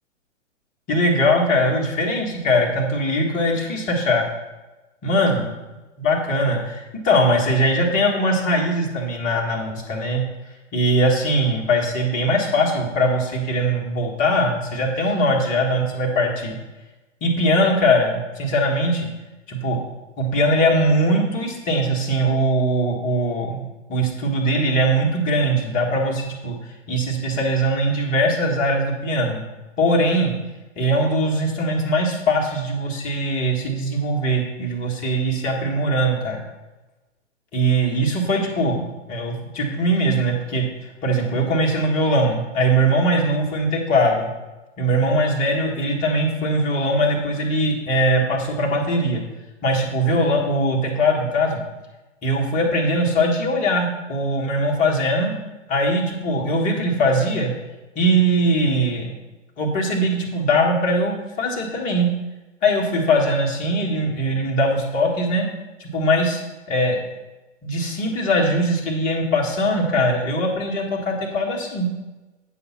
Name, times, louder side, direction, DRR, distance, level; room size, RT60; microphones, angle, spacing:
voice 1, 0.9-4.3 5.0-5.4 6.0-10.2 10.7-16.6 17.2-19.1 19.5-19.8 20.2-23.6 23.9-26.5 26.9-29.4 29.8-30.3 30.7-36.4 37.5-44.3 44.8-49.2 49.6-51.6 52.2-55.3 55.7-57.5 57.9-59.1 59.6-62.1 62.6-65.5 65.8-66.4 66.7-67.0 67.6-71.9, equal, 20° left, 0 dB, 1.6 m, -21 dB
9.3 x 5.6 x 5.8 m, 1.1 s
figure-of-eight pair, 120°, 38 cm